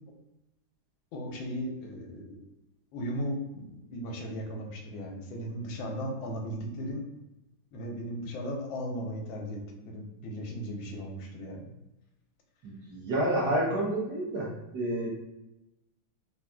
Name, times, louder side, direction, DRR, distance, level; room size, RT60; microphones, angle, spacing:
voice 1, 1.1-2.4 2.9-7.1 7.7-11.6, equal, 85° left, 2 dB, 1.4 m, -36 dB
voice 2, 12.6-15.1, right 1 dB, 65° right, -5 dB, 1.2 m, -29 dB
3.7 x 2.4 x 2.2 m, 0.97 s
omnidirectional pair, 2.2 m